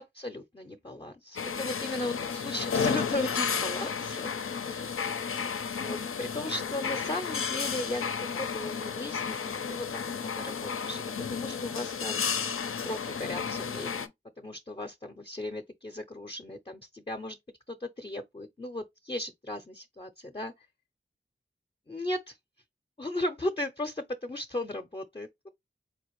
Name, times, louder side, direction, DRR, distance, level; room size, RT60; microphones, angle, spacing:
voice 1, 0.0-4.3 4.6-5.0 5.8-9.9 10.2-11.0 11.3-14.1 14.4-17.4 17.7-20.5 21.9-22.4 23.0-25.5, left 1 dB, 25° left, 0.4 m, -36 dB
sound 1, 1.4-14.1, left 6 dB, 85° left, 0.4 m, -32 dB
4.3 x 2.5 x 2.9 m
wide cardioid pair, 50°, 21 cm